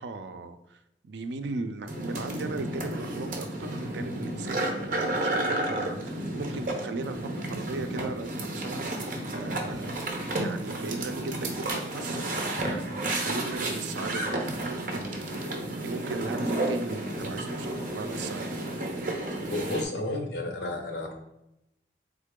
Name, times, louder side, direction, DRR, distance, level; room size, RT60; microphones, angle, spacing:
voice 1, 0.0-10.0 10.3-18.5, right 3 dB, 80° right, 9 dB, 0.4 m, -38 dB
sound 1, 1.9-19.8, right 1 dB, 50° right, 0.7 m, -32 dB
voice 2, 19.5-21.1, left 2 dB, 75° left, 4 dB, 0.9 m, -32 dB
3.7 x 3.6 x 3.6 m, 0.86 s
head